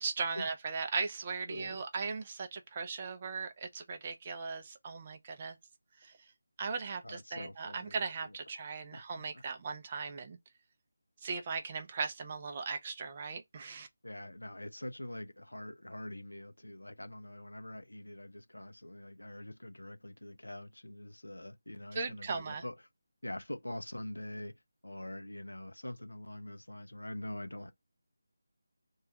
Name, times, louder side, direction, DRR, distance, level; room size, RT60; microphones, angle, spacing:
voice 1, 0.0-5.6 6.0-6.1 6.6-10.4 11.2-13.9 21.9-22.6, right 4 dB, 30° right, 0.4 m, -38 dB
voice 2, 1.5-1.8 7.0-8.4 8.9-9.4 14.0-22.7 23.2-27.7, left 1 dB, 85° left, 0.3 m, -44 dB
2.3 x 2.3 x 2.7 m
figure-of-eight pair, 160°, 0 cm